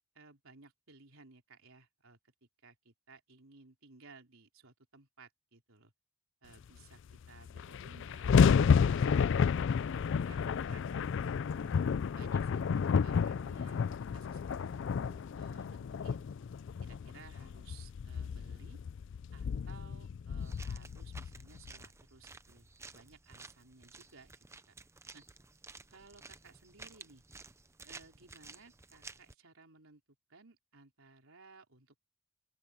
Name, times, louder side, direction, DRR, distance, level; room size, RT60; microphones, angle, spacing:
voice 1, 0.0-5.9 6.4-7.0 7.3-9.5 10.3-10.8 11.2-11.4 11.6-11.8 12.1-13.8 14.1-16.3 16.8-18.8 19.3-24.3 24.7-24.8 25.1-25.2 25.9-27.2 27.8-30.0 30.3-32.0, right 3 dB, 75° right, 3.7 m, -59 dB
sound 1, 7.1-7.2 7.4-21.7, left 6 dB, 60° left, 0.3 m, -31 dB
sound 2, 20.4-29.3, right 3 dB, 15° right, 0.6 m, -54 dB
sound 3, 24.1-25.2, equal, 25° left, 6.3 m, -67 dB
open air
head